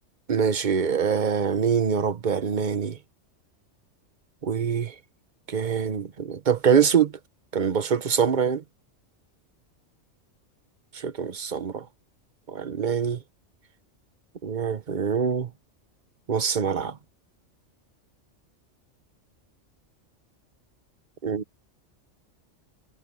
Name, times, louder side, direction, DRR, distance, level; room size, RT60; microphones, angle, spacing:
voice 1, 0.3-3.0 4.4-4.9 5.5-7.1 7.5-8.6 10.9-11.8 12.5-13.2 14.4-15.5 16.3-17.0 21.2-21.4, right 7 dB, 40° right, 1.1 m, -24 dB
omnidirectional pair, 1.3 m